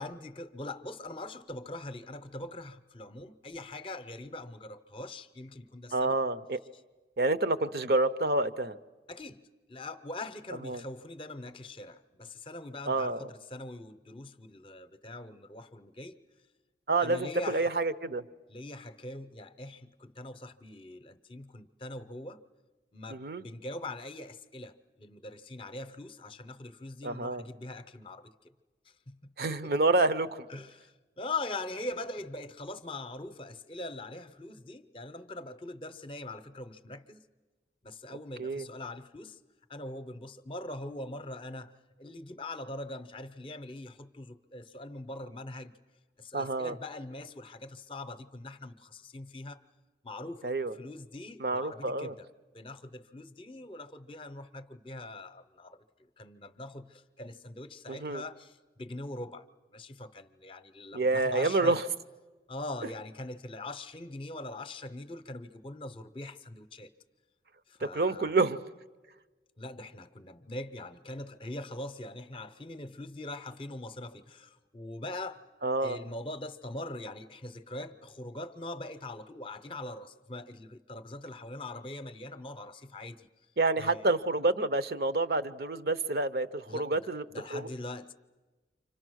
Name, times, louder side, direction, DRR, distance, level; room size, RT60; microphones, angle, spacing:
voice 1, 0.0-6.2 9.1-9.4 9.7-16.2 17.0-17.7 18.5-22.4 22.9-28.3 29.1-29.7 30.5-37.2 37.8-39.4 39.7-41.7 42.0-45.7 46.2-49.6 50.0-52.3 52.5-59.4 59.7-61.8 62.5-66.9 67.7-68.3 69.6-75.4 75.8-83.3 83.8-84.1 86.7-87.0 87.3-88.1, left 2 dB, 30° left, 0.7 m, -42 dB
voice 2, 5.9-6.6 7.2-8.8 10.6-10.8 12.9-13.3 16.9-18.2 23.1-23.4 27.0-27.4 29.4-30.5 38.4-38.6 46.3-46.7 50.4-50.7 51.4-52.1 57.9-58.2 60.9-61.8 67.8-68.6 75.6-76.0 83.6-87.2 87.5-87.7, right 2 dB, 60° right, 0.7 m, -28 dB
29.5 x 25.5 x 6.4 m
head